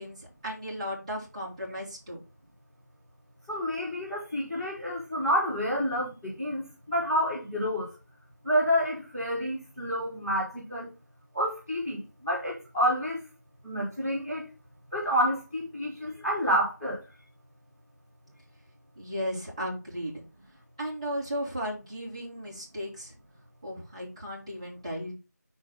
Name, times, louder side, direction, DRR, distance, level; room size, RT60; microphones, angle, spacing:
voice 1, 0.0-2.2 19.0-20.2 20.8-23.1 23.6-25.1, equal, 20° right, 2.6 m, -35 dB
voice 2, 3.5-7.9 8.4-10.9 11.3-13.2 13.6-14.5 14.9-17.0, equal, 5° left, 1.9 m, -29 dB
6.3 x 6.1 x 4.0 m
figure-of-eight pair, 175°, 10 cm